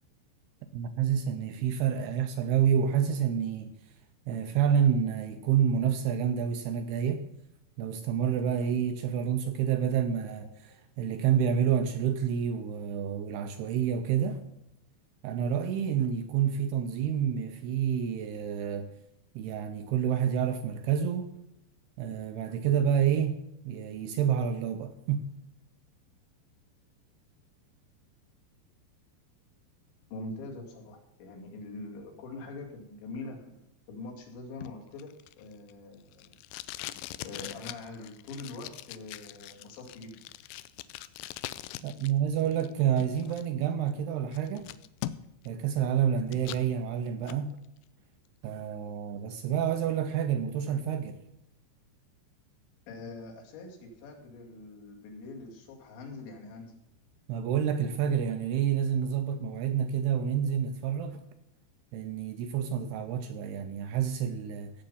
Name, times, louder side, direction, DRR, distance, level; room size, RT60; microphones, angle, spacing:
voice 1, 0.7-3.7 4.3-7.3 7.8-10.5 11.0-14.4 15.2-18.9 19.4-21.3 22.0-23.4 23.7-25.3 41.8-44.7 45.5-47.5 48.4-51.2 57.3-61.2 61.9-64.7, right 8 dB, 80° right, 2.3 m, -28 dB
voice 2, 30.1-35.1 35.4-36.4 36.7-40.2 52.9-56.7, left 2 dB, 70° left, 4.5 m, -44 dB
Packing tape duct tape, 34.6-42.1 42.4-43.4 43.9-44.0 44.3-45.5 45.8-46.7 47.1-47.4, left 15 dB, 85° left, 3.0 m, -42 dB
17.0 x 7.8 x 5.4 m
omnidirectional pair, 5.5 m